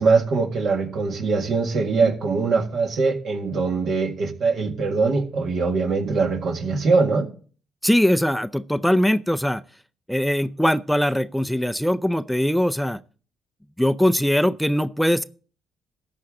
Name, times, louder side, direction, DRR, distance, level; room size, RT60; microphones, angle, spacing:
voice 1, 0.0-7.3, right 4 dB, 65° right, 1.9 m, -22 dB
voice 2, 7.8-9.6 10.1-13.0 13.8-15.2, equal, ahead, 0.4 m, -21 dB
14.0 x 8.8 x 3.8 m
cardioid pair, 90°, 0 cm